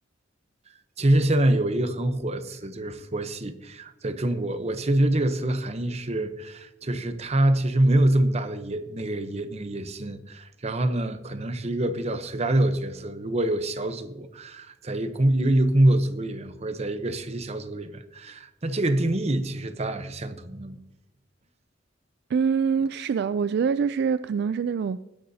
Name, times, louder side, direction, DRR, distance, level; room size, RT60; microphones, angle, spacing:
voice 1, 1.0-20.8, right 1 dB, 35° right, 0.8 m, -25 dB
voice 2, 22.3-25.0, right 6 dB, 60° right, 0.3 m, -25 dB
20.5 x 10.5 x 2.8 m
head